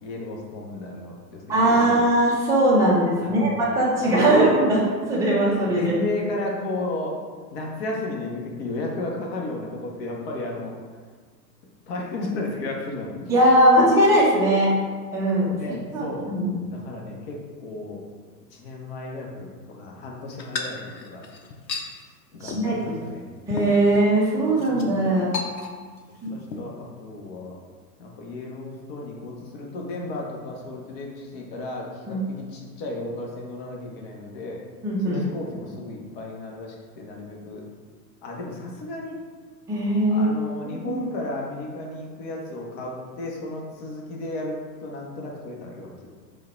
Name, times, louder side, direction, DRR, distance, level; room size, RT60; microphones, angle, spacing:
voice 1, 0.0-2.1 3.2-3.7 4.0-4.5 5.7-7.2 7.5-10.7 11.9-13.3 15.6-16.3 16.7-18.0 18.5-21.2 22.3-23.3 24.5-24.9 26.3-27.5 28.0-34.6 35.0-37.6 38.2-39.2 40.1-46.1, left 2 dB, 35° left, -1 dB, 0.8 m, -34 dB
voice 2, 1.5-5.9 13.3-14.7 15.1-15.6 15.9-16.6 22.4-23.0 23.5-25.3 26.2-26.3 32.1-32.2 34.8-35.2 39.7-40.3 40.6-41.0, right 1 dB, 5° right, -6 dB, 0.6 m, -20 dB
sound 1, 20.4-21.9 22.5-22.7 23.1-23.2 23.5-24.1 24.6-24.8 25.3-26.0 26.3-26.6, left 4 dB, 85° left, 0.7 m, -33 dB
4.9 x 2.3 x 4.2 m, 1.5 s
figure-of-eight pair, 110°, 50 cm